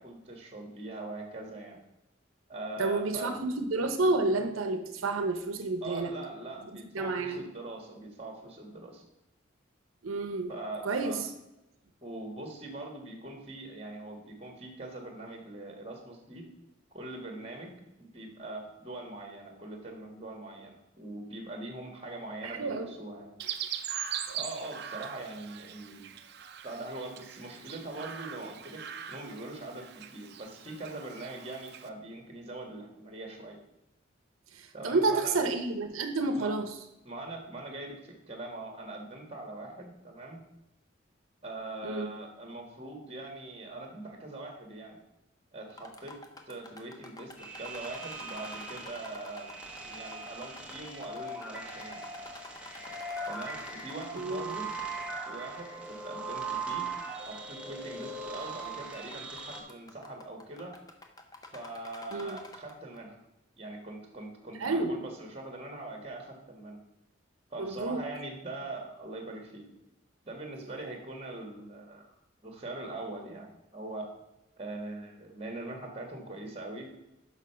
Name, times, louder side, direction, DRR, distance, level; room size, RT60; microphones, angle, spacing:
voice 1, 0.0-1.8 2.5-3.4 5.8-9.0 10.5-11.2 12.0-16.4 16.9-23.4 24.3-26.1 26.6-28.8 29.1-33.6 34.7-35.3 36.3-36.5 37.0-40.4 41.4-45.0 45.5-46.2 46.4-49.5 49.8-52.0 53.3-54.7 55.2-56.9 57.2-60.8 61.5-63.2 63.6-66.8 67.5-69.6 70.2-72.1 72.4-74.1 74.6-77.0, right 2 dB, 30° right, 3 dB, 1.4 m, -42 dB
voice 2, 2.8-6.1 6.9-7.4 10.0-10.5 10.8-11.2 22.4-22.9 34.5-36.7 41.8-42.1 54.2-54.6 62.1-62.4 64.6-65.0 67.6-68.0, right 3 dB, 90° right, 6 dB, 0.7 m, -30 dB
Chirp tweet, 23.4-31.9, right 9 dB, 55° right, 0.5 m, -41 dB
sound 1, 45.7-54.7 55.0-55.1 55.8-55.9 56.6-56.7 57.8-58.1 58.4-58.6 58.9-63.0, left 2 dB, 20° left, 0.6 m, -49 dB
sound 2, 47.4-59.6, right 3 dB, 5° right, 0.9 m, -40 dB
6.3 x 5.6 x 5.6 m, 0.93 s
head